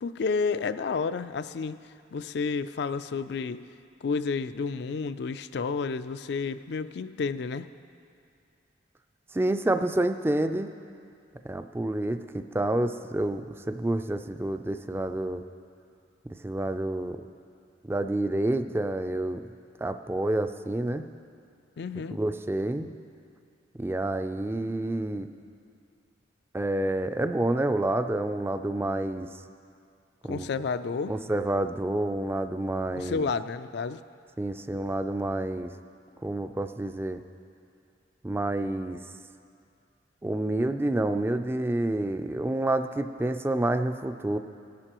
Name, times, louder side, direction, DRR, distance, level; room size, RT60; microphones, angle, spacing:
voice 1, 0.0-1.8 2.1-3.6 4.0-7.7 21.8-22.2 30.3-31.1 32.9-34.0, left 4 dB, 60° left, 12 dB, 0.4 m, -30 dB
voice 2, 9.3-10.7 11.4-15.4 16.4-17.2 17.8-19.4 19.8-21.0 22.1-22.9 23.8-25.3 26.5-29.3 30.2-30.5 31.1-33.3 34.4-35.7 36.2-37.2 38.2-39.0 40.2-44.4, right 1 dB, 15° right, 9 dB, 0.3 m, -28 dB
18.0 x 11.0 x 3.0 m, 2.4 s
head